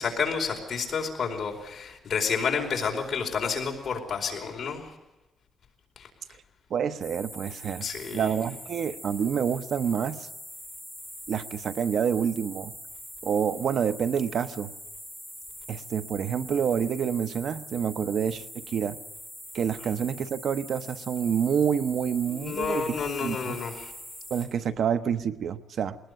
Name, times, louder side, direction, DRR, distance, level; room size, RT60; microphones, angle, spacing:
voice 1, 0.0-4.9 6.0-6.1 7.8-8.4 22.3-23.9, left 6 dB, 45° left, 2 dB, 4.7 m, -30 dB
voice 2, 6.7-10.3 11.3-12.7 13.2-14.7 15.7-19.0 19.5-23.0 23.2-23.6 24.3-26.0, right 7 dB, 55° right, 12 dB, 0.9 m, -28 dB
sound 1, 7.0-24.5, equal, 10° right, 6.9 m, -43 dB
21.5 x 19.5 x 8.1 m, 1.0 s
cardioid pair, 155°, 0 cm